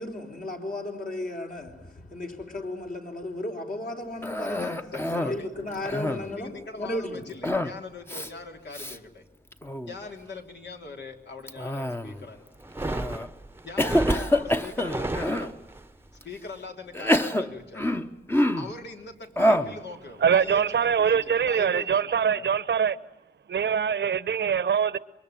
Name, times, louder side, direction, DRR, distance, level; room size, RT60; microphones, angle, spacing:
voice 1, 0.0-7.7, left 1 dB, 50° left, 4.2 m, -35 dB
Cough, 4.2-5.4 5.7-6.4 7.4-7.8 8.1-8.3 8.7-9.0 9.5-10.0 11.5-12.3 12.9-13.3 13.8-15.5 16.2-16.3 16.9-18.8 19.4-19.8, left 1 dB, 10° left, 1.1 m, -26 dB
voice 2, 4.9-5.5 5.8-9.3 9.9-12.5 13.6-15.6 16.2-18.0 18.6-22.5, left 3 dB, 70° left, 3.4 m, -41 dB
sound 1, 12.6-15.8, right 2 dB, 10° right, 1.0 m, -32 dB
voice 3, 20.2-23.0 23.5-25.0, right 7 dB, 75° right, 1.0 m, -23 dB
27.0 x 23.5 x 9.1 m
wide cardioid pair, 135°, 18 cm